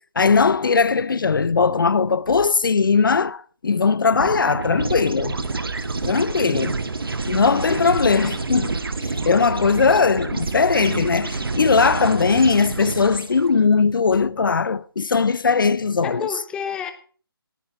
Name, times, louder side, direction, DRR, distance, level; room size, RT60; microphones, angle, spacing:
voice 1, 0.2-5.4 6.0-6.7 7.3-8.7 9.0-16.3, left 5 dB, 60° left, 0.6 m, -19 dB
sound 1, 4.1-13.5, right 3 dB, 65° right, 1.6 m, -28 dB
voice 2, 7.6-7.9 16.0-16.9, left 7 dB, 5° left, 0.7 m, -31 dB
18.0 x 10.0 x 3.8 m
figure-of-eight pair, 150°, 13 cm